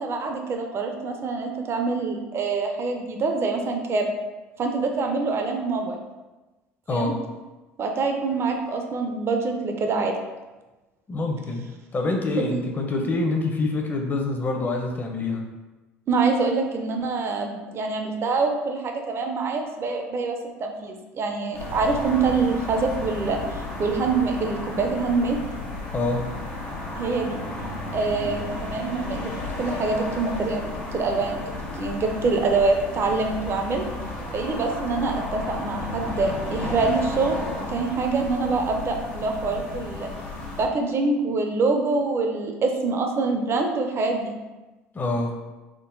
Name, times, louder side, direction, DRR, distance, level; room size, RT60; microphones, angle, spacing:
voice 1, 0.0-4.1 4.6-6.0 6.9-7.1 7.8-10.2 12.5-12.6 16.1-23.4 23.8-25.4 27.0-27.4 27.9-31.5 31.8-33.8 34.3-37.3 37.7-40.1 40.6-44.4, right 3 dB, 40° right, 3 dB, 0.6 m, -25 dB
voice 2, 6.9-7.2 11.1-11.6 11.9-15.4 25.9-26.3 44.9-45.3, left 2 dB, 30° left, 2 dB, 0.7 m, -26 dB
sound 1, 21.5-40.6, left 2 dB, 85° left, 0.9 m, -33 dB
3.6 x 2.1 x 3.8 m, 1.1 s
hypercardioid pair, 75°, 6 cm